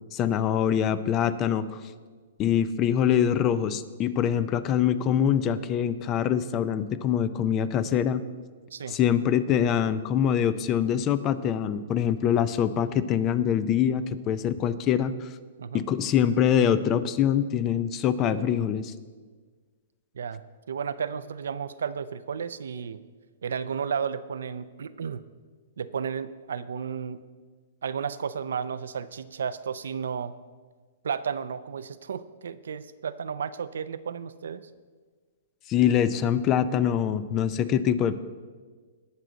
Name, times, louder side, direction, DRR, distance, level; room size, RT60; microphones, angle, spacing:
voice 1, 0.1-1.8 2.4-8.2 8.9-15.3 15.7-18.9 35.7-38.2, left 9 dB, 25° left, 14 dB, 0.5 m, -24 dB
voice 2, 20.7-23.0 23.4-25.2 25.8-27.2 27.8-30.3 31.0-34.7, right 7 dB, 85° right, 13 dB, 0.5 m, -33 dB
18.5 x 6.3 x 4.0 m, 1.5 s
hypercardioid pair, 150°, 0 cm